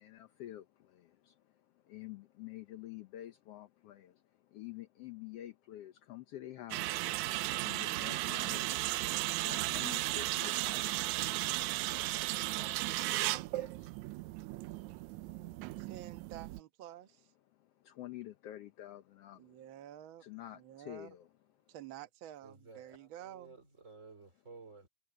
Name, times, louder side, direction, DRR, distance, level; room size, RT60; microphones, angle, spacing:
voice 1, 0.0-15.9 17.5-19.8 20.2-21.3 21.6-21.7, left 14 dB, 65° left, 1.6 m, -50 dB
sound 1, 6.7-16.6, right 18 dB, 80° right, 1.8 m, -35 dB
voice 2, 15.1-15.9 22.4-24.9, right 4 dB, 20° right, 4.0 m, -56 dB
voice 3, 15.8-17.3 19.3-20.2 20.5-21.1 21.7-23.5, right 12 dB, 55° right, 1.5 m, -50 dB
omnidirectional pair, 3.6 m